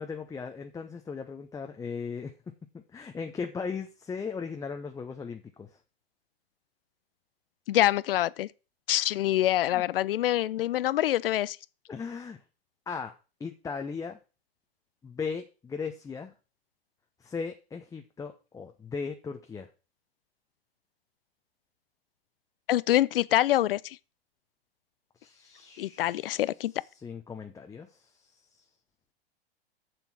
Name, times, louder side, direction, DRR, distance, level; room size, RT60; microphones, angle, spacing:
voice 1, 0.0-2.3 2.7-5.7 9.7-9.8 11.9-12.4 12.9-13.1 13.4-14.2 15.0-16.3 17.2-19.7 25.2-26.4 27.0-27.9 28.2-28.4, left 5 dB, 10° left, 0.8 m, -37 dB
voice 2, 7.7-8.5 8.9-11.6 22.7-24.0 25.8-26.7, left 14 dB, 65° left, 0.6 m, -25 dB
7.0 x 7.0 x 5.9 m
hypercardioid pair, 105°, 31 cm